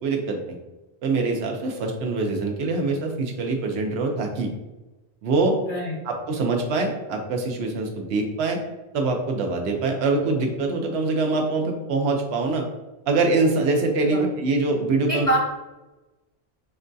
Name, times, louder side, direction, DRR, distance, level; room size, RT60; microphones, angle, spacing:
voice 1, 0.0-0.6 1.0-4.5 5.2-5.5 6.0-8.6 8.9-12.7 13.1-15.3, right 3 dB, 85° right, 2 dB, 0.9 m, -24 dB
voice 2, 5.7-6.0 14.1-14.3 15.1-15.4, right 1 dB, 35° left, -5 dB, 0.9 m, -25 dB
4.5 x 2.2 x 2.6 m, 1.1 s
omnidirectional pair, 1.0 m